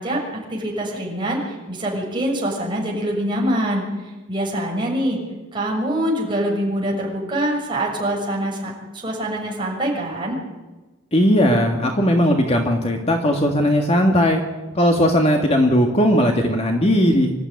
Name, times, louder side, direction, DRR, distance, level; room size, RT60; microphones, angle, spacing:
voice 1, 0.0-5.2 5.5-10.4, right 1 dB, 25° right, -2 dB, 6.5 m, -24 dB
voice 2, 11.1-14.4 14.7-17.3, equal, 30° left, 2 dB, 1.9 m, -17 dB
26.0 x 13.5 x 9.7 m, 1.2 s
head